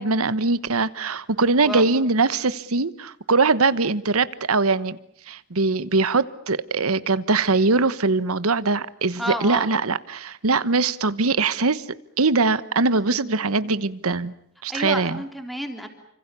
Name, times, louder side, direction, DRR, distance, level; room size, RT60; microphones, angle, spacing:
voice 1, 0.0-5.0 5.3-11.8 12.2-14.3 14.6-15.2, right 3 dB, 85° right, 15 dB, 1.2 m, -22 dB
voice 2, 9.2-9.7 13.1-13.2 14.7-15.9, equal, ahead, 5 dB, 3.4 m, -30 dB
29.5 x 26.0 x 6.9 m, 0.71 s
head